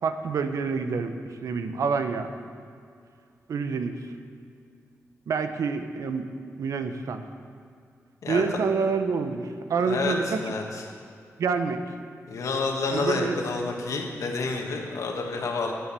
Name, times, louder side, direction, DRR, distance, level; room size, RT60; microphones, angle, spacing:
voice 1, 0.0-2.3 3.5-4.1 5.3-6.3 6.6-7.2 8.3-10.4 11.4-11.8 12.9-13.4, right 5 dB, 85° right, 8 dB, 0.7 m, -27 dB
voice 2, 9.8-10.8 12.3-15.7, left 3 dB, 75° left, 1 dB, 1.5 m, -29 dB
10.0 x 7.8 x 6.8 m, 2.3 s
wide cardioid pair, 130°, 5 cm